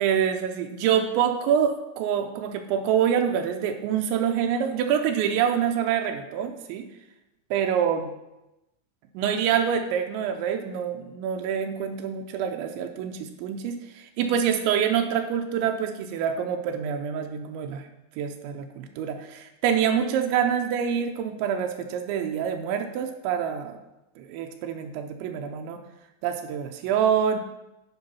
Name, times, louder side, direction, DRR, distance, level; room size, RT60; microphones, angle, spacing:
voice 1, 0.0-6.8 7.5-8.1 9.1-17.8 18.2-23.8 24.2-25.8 26.2-27.4, right 8 dB, 85° right, 5 dB, 2.7 m, -26 dB
10.5 x 5.5 x 5.6 m, 0.95 s
omnidirectional pair, 5.7 m